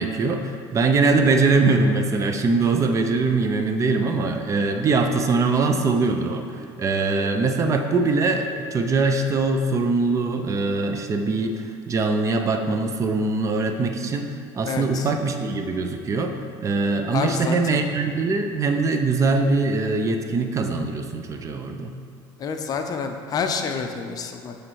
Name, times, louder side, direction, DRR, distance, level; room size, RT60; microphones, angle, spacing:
voice 1, 0.0-16.4 16.6-21.9, right 3 dB, 30° right, 5 dB, 0.5 m, -22 dB
sound 1, 6.0-9.3, right 1 dB, 55° right, 1.0 m, -45 dB
voice 2, 14.6-15.1 17.1-17.8 22.4-24.5, left 5 dB, 40° left, 5 dB, 0.6 m, -28 dB
8.6 x 3.3 x 4.7 m, 2.4 s
supercardioid pair, 115°, 10 cm